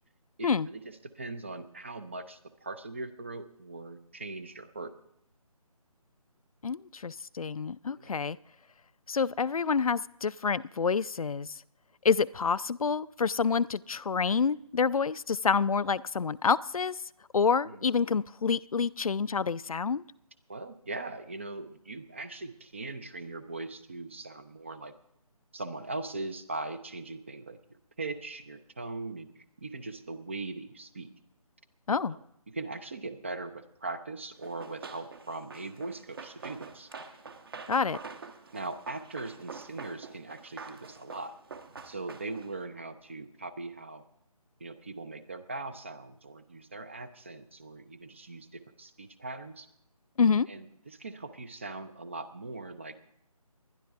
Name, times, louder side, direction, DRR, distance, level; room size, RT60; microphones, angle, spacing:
voice 1, 0.4-4.9 8.0-8.1 17.6-17.9 20.5-24.9 25.5-27.6 28.0-31.1 32.1-32.2 32.5-36.9 38.5-41.3 41.8-44.0 44.6-49.7 50.5-53.0, right 3 dB, 20° right, 12 dB, 0.4 m, -40 dB
voice 2, 6.6-8.4 9.1-11.6 12.0-17.0 17.3-20.0 31.9-32.2 37.7-38.0 50.2-50.5, left 5 dB, 70° left, 17 dB, 0.4 m, -28 dB
Run, 34.4-42.6, right 4 dB, 40° right, 1.1 m, -46 dB
20.0 x 12.0 x 3.5 m, 0.77 s
figure-of-eight pair, 155°, 19 cm